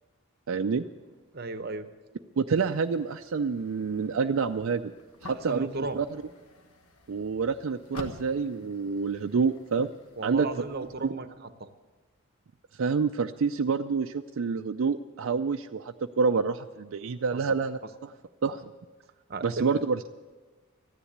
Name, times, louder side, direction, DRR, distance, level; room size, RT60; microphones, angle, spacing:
voice 1, 0.5-0.8 2.4-4.9 5.2-5.7 5.9-6.1 7.1-9.9 10.2-10.5 11.0-11.1 12.8-18.1 18.4-18.6 19.4-20.1, right 5 dB, 70° right, 6 dB, 0.4 m, -27 dB
voice 2, 1.3-1.9 5.3-6.0 10.2-11.7 17.3-17.4 19.3-19.8, right 3 dB, 45° right, 11 dB, 0.8 m, -35 dB
sound 1, 2.6-11.1, left 2 dB, 85° left, 1.4 m, -49 dB
14.0 x 10.0 x 8.0 m, 1.4 s
head